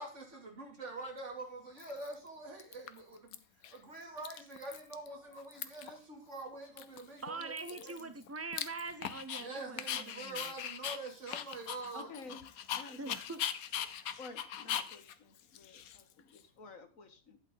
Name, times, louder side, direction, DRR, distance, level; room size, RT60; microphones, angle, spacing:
voice 1, 0.0-3.4 3.7-6.8 7.1-7.5 9.4-12.4, right 2 dB, 55° right, 2 dB, 3.1 m, -45 dB
Dog, 1.0-1.1 1.8-2.3 2.6-3.4 3.6-3.8 4.0-5.1 5.3-6.0 6.3-6.4 6.8-9.4 9.8-16.4, left 9 dB, 85° left, 1.3 m, -41 dB
voice 2, 7.2-10.5 13.0-13.4 13.9-14.1, right 3 dB, 25° right, 10 dB, 0.3 m, -43 dB
voice 3, 11.9-12.4 12.7-13.2 14.2-17.4, left 3 dB, 70° left, 7 dB, 2.0 m, -51 dB
11.5 x 8.3 x 3.9 m, 0.33 s
omnidirectional pair, 1.5 m